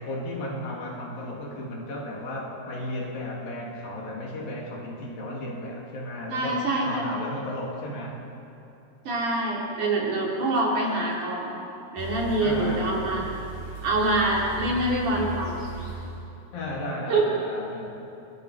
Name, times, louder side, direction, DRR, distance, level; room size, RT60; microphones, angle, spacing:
voice 1, 0.0-8.3 12.4-13.2 16.5-17.9, left 1 dB, 60° left, -2 dB, 4.1 m, -34 dB
voice 2, 6.3-7.0 9.0-11.5 11.9-13.2 13.8-15.6 17.1-17.2, right 2 dB, 50° right, -4 dB, 4.6 m, -25 dB
sound 1, 12.0-16.3, right 2 dB, 65° right, 8.6 m, -37 dB
29.0 x 21.0 x 5.0 m, 2.7 s
omnidirectional pair, 4.9 m